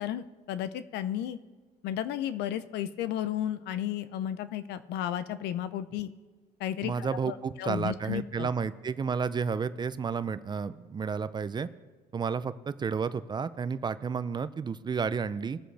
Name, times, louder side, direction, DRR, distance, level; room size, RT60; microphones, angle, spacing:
voice 1, 0.0-1.4 1.8-6.1 6.6-8.5, left 11 dB, 80° left, 14 dB, 0.6 m, -33 dB
voice 2, 6.8-11.7 12.1-15.6, right 5 dB, 25° right, 14 dB, 0.4 m, -31 dB
20.5 x 7.6 x 3.4 m, 1.4 s
cardioid pair, 110°, 17 cm